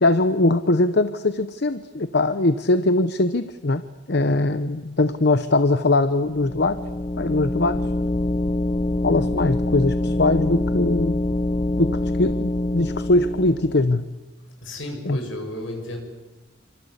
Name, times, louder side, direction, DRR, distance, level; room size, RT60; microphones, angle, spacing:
voice 1, 0.0-3.8 4.1-6.8 7.2-7.8 9.0-11.2 11.8-14.0 15.1-15.2, left 2 dB, 55° left, 11 dB, 0.9 m, -21 dB
sound 1, 6.3-14.0, left 1 dB, 30° left, 0.9 m, -25 dB
voice 2, 14.6-16.0, left 1 dB, 75° left, 3 dB, 7.5 m, -32 dB
27.5 x 25.5 x 8.2 m, 1.1 s
head